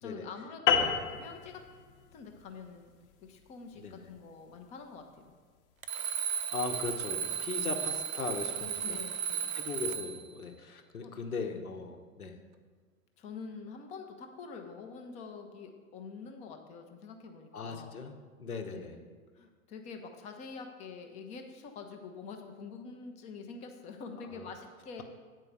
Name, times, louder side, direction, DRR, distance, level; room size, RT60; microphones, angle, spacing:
voice 1, 0.0-1.6 2.1-2.9 3.2-5.3 7.6-7.7 8.8-9.5 11.0-11.1 11.5-11.7 13.2-18.0 18.6-19.1 19.3-25.0, left 5 dB, 15° left, 4 dB, 0.4 m, -46 dB
sound 1, 0.7-5.4, left 7 dB, 40° left, 0.9 m, -32 dB
Alarm, 5.8-10.3, right 7 dB, 70° right, 0.7 m, -34 dB
voice 2, 6.5-9.0 9.5-12.3 17.5-18.9 24.4-24.5, left 4 dB, 80° left, 5 dB, 1.0 m, -39 dB
7.7 x 4.6 x 6.5 m, 1.5 s
figure-of-eight pair, 100°, 43 cm